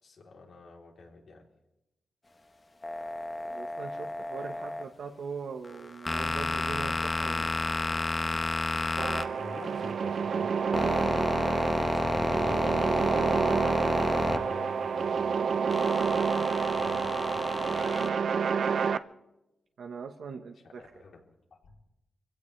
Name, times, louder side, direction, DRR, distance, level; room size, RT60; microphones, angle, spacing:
voice 1, 0.0-1.5 9.4-11.0 11.6-12.9 13.8-17.7 20.6-21.3 21.5-21.7, left 3 dB, 70° left, 0 dB, 3.5 m, -47 dB
sound 1, 2.8-4.8 5.6-9.9 10.3-14.9 15.7-18.1, left 2 dB, 25° left, 1.0 m, -31 dB
voice 2, 3.4-7.5 19.8-20.8, right 5 dB, 80° right, 3 dB, 1.2 m, -41 dB
sound 2, 9.0-19.0, right 6 dB, 60° right, 0.6 m, -29 dB
26.0 x 16.5 x 3.4 m, 0.93 s
wide cardioid pair, 155°, 0 cm